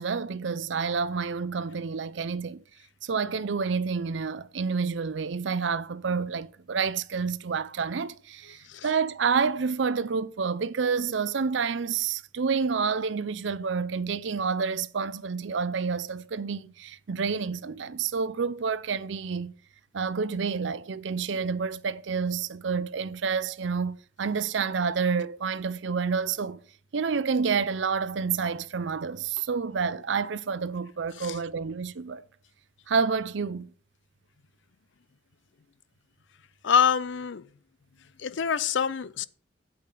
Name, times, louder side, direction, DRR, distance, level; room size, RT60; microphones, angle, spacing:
voice 1, 0.0-2.6 3.0-19.5 19.9-26.6 26.9-32.2 32.9-33.7, right 5 dB, 65° right, 0.5 m, -29 dB
voice 2, 36.6-37.5 38.2-39.3, left 7 dB, 65° left, 0.5 m, -25 dB
8.5 x 8.5 x 3.9 m
head